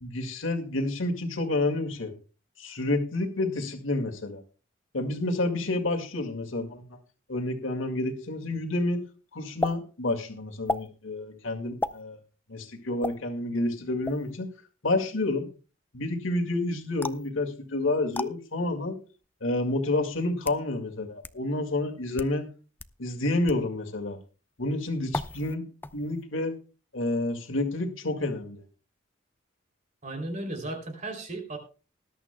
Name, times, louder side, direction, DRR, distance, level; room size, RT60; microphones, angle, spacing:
voice 1, 0.0-2.1 2.6-4.4 4.9-6.8 7.3-9.0 9.3-12.2 12.5-14.5 14.8-15.5 15.9-19.0 19.4-22.5 23.0-24.2 24.6-25.6 25.9-26.5 26.9-28.6, left 2 dB, 85° left, 3 dB, 2.0 m, -29 dB
sound 1, 9.6-9.7 10.6-10.9 11.8-12.0 13.0-13.2 14.0-14.3 17.0-17.3 18.1-18.3 19.2-19.3 20.2-20.6 21.2-21.3 22.0-22.3 22.8-22.9 23.5-23.6 25.1-25.5 25.8-26.2, left 2 dB, 10° left, 0.4 m, -32 dB
voice 2, 30.0-31.6, right 2 dB, 40° right, 4 dB, 3.0 m, -35 dB
20.0 x 11.0 x 2.2 m, 0.35 s
head